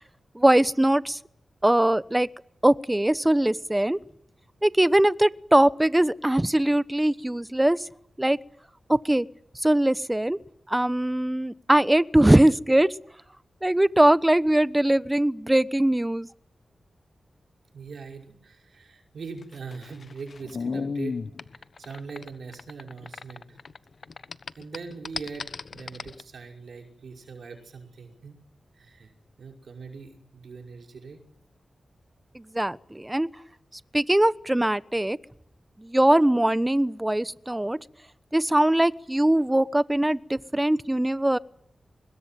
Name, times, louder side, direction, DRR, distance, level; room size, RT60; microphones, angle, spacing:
voice 1, 0.3-1.2 1.6-2.3 2.6-4.0 4.6-7.8 8.2-8.4 8.9-9.3 9.6-10.4 10.7-12.9 13.6-16.3 32.3-33.3 33.9-35.2 35.8-37.8 38.3-41.4, right 1 dB, 15° right, 16 dB, 1.0 m, -21 dB
voice 2, 17.7-21.2 21.5-23.6 24.6-28.4 28.7-29.1 29.4-31.2, right 4 dB, 75° right, 3 dB, 5.6 m, -41 dB
sound 1, 19.4-23.8 24.0-26.2, left 4 dB, 65° left, 1.1 m, -34 dB
25.5 x 21.0 x 9.3 m, 0.67 s
cardioid pair, 55°, 0 cm